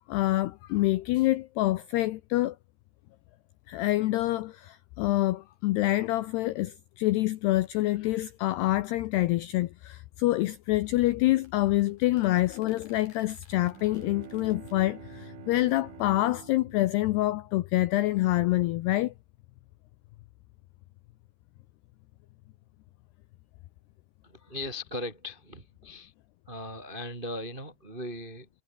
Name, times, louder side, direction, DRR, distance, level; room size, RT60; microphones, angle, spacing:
voice 1, 0.1-2.6 3.7-19.1, left 17 dB, 80° left, 2.4 m, -26 dB
sound 1, 10.6-14.8, left 5 dB, 45° left, 6.9 m, -62 dB
Bowed string instrument, 13.5-18.2, right 10 dB, 55° right, 2.4 m, -49 dB
voice 2, 24.2-26.1 26.5-28.5, left 1 dB, 25° right, 1.0 m, -38 dB
omnidirectional pair, 5.7 m